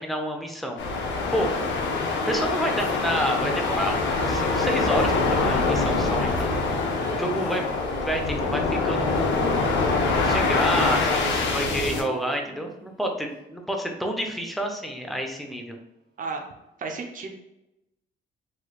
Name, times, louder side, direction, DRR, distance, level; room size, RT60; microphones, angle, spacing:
voice 1, 0.0-1.5 2.3-4.0 4.3-6.8 7.1-7.6 8.0-9.9 10.2-15.8, equal, ahead, 2 dB, 0.5 m, -29 dB
sound 1, 0.8-12.0, left 3 dB, 70° left, 0.6 m, -24 dB
Female singing, 1.7-8.7 9.3-13.1, right 2 dB, 20° right, 1.0 m, -40 dB
voice 2, 16.8-17.3, right 4 dB, 40° right, 2 dB, 0.6 m, -32 dB
3.1 x 3.0 x 2.3 m, 0.92 s
cardioid pair, 90°, 20 cm